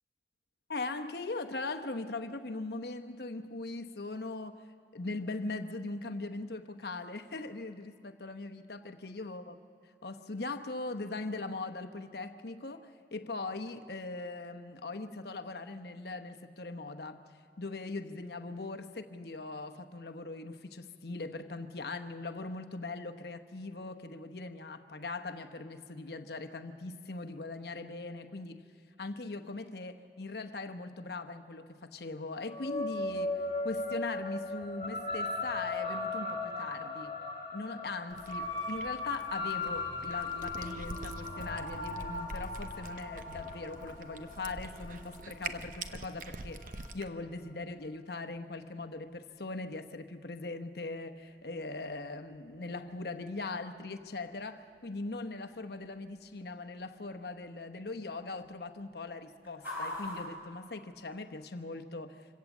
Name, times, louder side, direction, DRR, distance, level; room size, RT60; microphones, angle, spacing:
voice 1, 0.7-9.6 10.0-17.2 17.6-28.6 29.0-37.2 37.5-62.3, left 3 dB, 60° left, 1.0 m, -40 dB
sound 1, 32.4-47.1, left 2 dB, 35° left, 2.4 m, -38 dB
Cat, 38.1-47.1, right 3 dB, 45° right, 0.8 m, -46 dB
sound 2, 46.6-61.5, left 1 dB, 10° right, 5.9 m, -50 dB
26.0 x 17.0 x 7.2 m
head